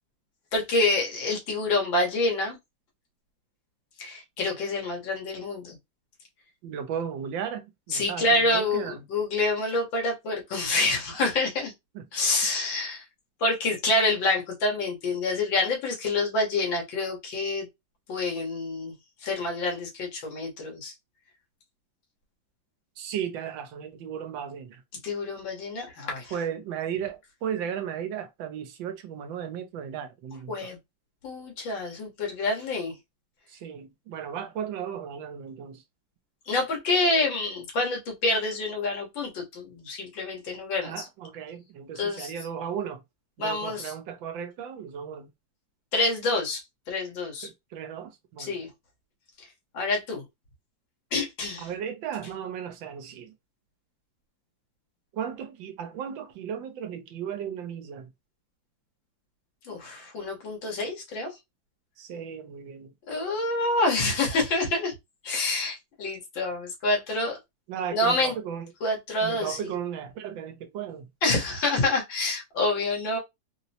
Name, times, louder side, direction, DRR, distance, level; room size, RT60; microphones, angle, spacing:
voice 1, 0.5-2.6 4.0-5.8 7.9-11.7 12.1-13.0 13.4-17.7 18.1-18.9 19.2-20.9 25.0-26.3 30.5-30.8 31.2-33.0 36.5-40.9 42.0-42.3 43.4-43.9 45.9-46.6 46.9-47.5 48.4-48.7 49.7-50.2 51.1-51.7 59.6-61.3 63.1-64.9 65.2-67.4 67.9-68.3 68.8-69.7 71.2-73.2, left 2 dB, 85° left, 2.1 m, -27 dB
voice 2, 6.6-9.0 11.9-12.1 23.0-24.8 26.3-30.7 33.5-35.8 40.8-43.0 43.4-45.3 47.4-48.6 51.6-53.3 55.1-58.1 62.0-62.9 67.7-68.7 69.2-71.1, right 8 dB, 85° right, 1.4 m, -35 dB
4.2 x 2.0 x 2.8 m
omnidirectional pair, 2.0 m